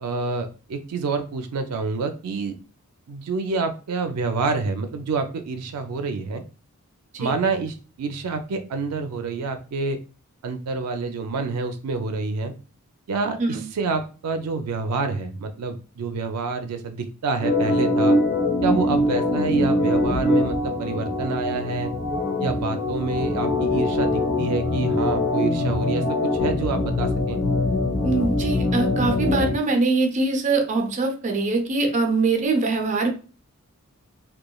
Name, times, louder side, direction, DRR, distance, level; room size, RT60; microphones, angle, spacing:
voice 1, 0.0-2.6 3.1-6.4 7.2-10.0 10.4-12.5 13.1-18.2 18.6-21.9 22.4-26.0 26.4-27.4, right 4 dB, 90° right, 7 dB, 0.4 m, -27 dB
Organ, 17.4-29.5, left 1 dB, 60° left, 0.7 m, -23 dB
voice 2, 28.0-33.1, right 3 dB, 35° right, 3 dB, 0.5 m, -23 dB
3.0 x 2.2 x 2.2 m, 0.36 s
head